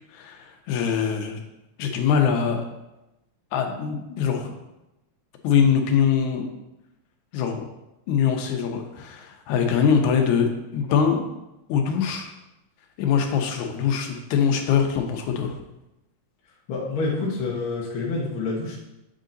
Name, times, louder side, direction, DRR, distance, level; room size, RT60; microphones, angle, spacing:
voice 1, 0.1-1.4 1.8-2.7 3.5-4.5 5.4-6.5 7.3-7.7 8.1-11.3 11.7-12.3 13.0-15.6, left 7 dB, 80° left, 4 dB, 2.1 m, -23 dB
voice 2, 16.7-18.8, left 3 dB, 60° left, -4 dB, 1.5 m, -27 dB
7.3 x 3.8 x 3.9 m, 0.94 s
omnidirectional pair, 3.3 m